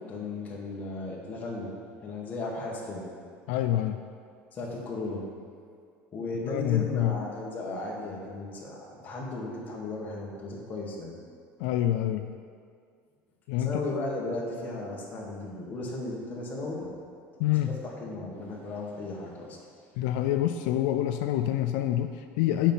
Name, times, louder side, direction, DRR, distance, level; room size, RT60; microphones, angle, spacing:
voice 1, 0.0-1.7 2.0-3.1 4.5-5.2 6.1-11.1 13.6-16.9 17.5-19.6, left 2 dB, 30° left, -3 dB, 1.8 m, -35 dB
voice 2, 3.5-4.0 6.4-7.2 11.6-12.4 13.5-13.8 17.4-17.8 20.0-22.7, left 12 dB, 85° left, 7 dB, 0.4 m, -26 dB
7.2 x 5.4 x 7.4 m, 2.2 s
cardioid pair, 145°, 6 cm